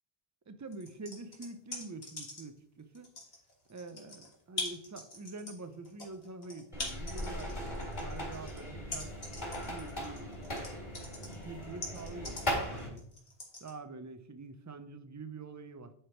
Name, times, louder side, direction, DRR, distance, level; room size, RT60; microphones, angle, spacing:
voice 1, 0.5-3.1 3.7-9.1 9.7-13.0 13.6-15.9, right 3 dB, 30° right, 10 dB, 0.3 m, -46 dB
sound 1, 0.7-2.6 2.9-13.7, left 2 dB, 65° left, 2.0 m, -42 dB
sound 2, 6.7-12.9, equal, 45° left, 2.2 m, -38 dB
9.9 x 3.4 x 4.4 m, 0.69 s
omnidirectional pair, 1.1 m